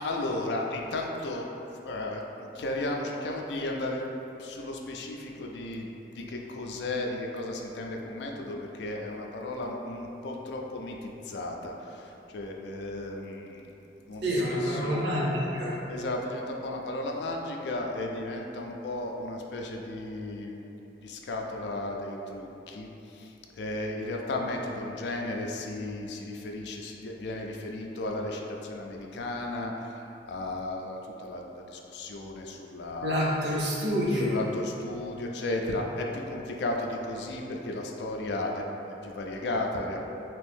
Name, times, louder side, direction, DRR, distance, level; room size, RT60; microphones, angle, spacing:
voice 1, 0.0-1.5 1.8-4.0 4.4-13.7 14.1-15.1 15.9-20.7 21.0-30.0 30.3-33.3 34.1-40.0, left 2 dB, 65° left, 1 dB, 0.3 m, -34 dB
voice 2, 14.2-15.8 33.0-34.4, equal, 65° right, -5 dB, 0.7 m, -27 dB
2.9 x 2.6 x 3.5 m, 3.0 s
head